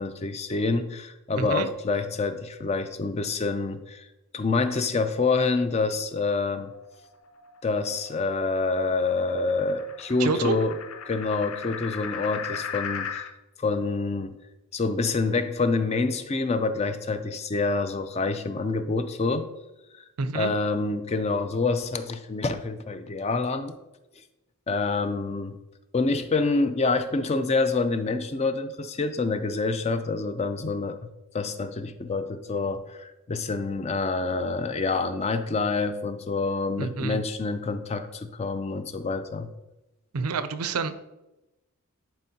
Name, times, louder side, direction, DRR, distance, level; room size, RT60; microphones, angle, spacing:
voice 1, 0.0-4.1 4.3-6.7 7.6-10.8 11.1-13.3 13.6-14.4 14.7-19.5 20.3-23.8 24.7-25.6 25.9-31.0 31.3-39.5, left 3 dB, 30° left, 10 dB, 0.4 m, -27 dB
voice 2, 1.4-1.7 10.2-10.6 20.2-20.5 36.8-37.2 40.1-41.0, right 4 dB, 85° right, 12 dB, 0.5 m, -28 dB
sound 1, 6.6-13.3, left 7 dB, 75° left, 0.6 m, -38 dB
11.0 x 4.5 x 2.8 m, 0.98 s
head